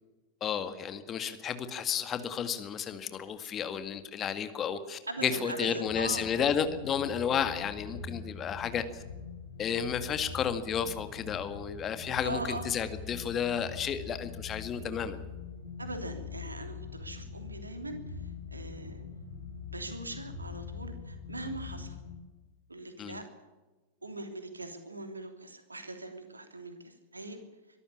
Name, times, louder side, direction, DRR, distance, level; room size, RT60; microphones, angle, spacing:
voice 1, 0.4-9.0 9.6-15.2 23.0-23.2, left 7 dB, 25° left, 10 dB, 2.0 m, -32 dB
voice 2, 5.1-6.3 12.2-12.7 15.8-18.0 18.5-19.0 19.7-22.0 22.7-23.2 24.0-27.4, right 2 dB, 80° right, 7 dB, 3.1 m, -41 dB
sound 1, 5.8-22.2, left 5 dB, 80° left, 4.9 m, -43 dB
23.5 x 13.5 x 8.6 m, 1.2 s
figure-of-eight pair, 90°, 0 cm